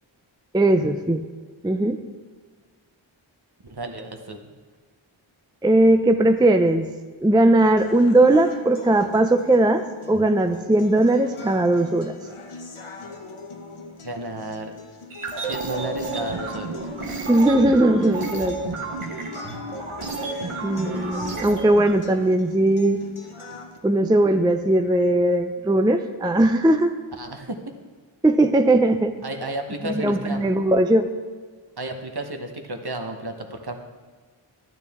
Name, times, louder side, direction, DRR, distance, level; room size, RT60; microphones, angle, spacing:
voice 1, 0.5-1.2 1.6-2.0 5.6-6.9 7.2-12.1 17.3-18.6 20.6-23.0 23.8-26.9 28.2-29.1 29.8-31.1, right 1 dB, 10° right, 7 dB, 0.4 m, -19 dB
voice 2, 3.6-4.4 14.0-14.7 15.4-16.8 27.2-27.6 29.2-30.4 31.8-33.8, right 1 dB, 50° right, 5 dB, 1.1 m, -32 dB
sound 1, 7.8-23.8, left 3 dB, 85° left, 1.0 m, -42 dB
sound 2, 15.1-21.9, right 3 dB, 90° right, 1.1 m, -31 dB
12.0 x 9.2 x 3.6 m, 1.5 s
wide cardioid pair, 45°, 49 cm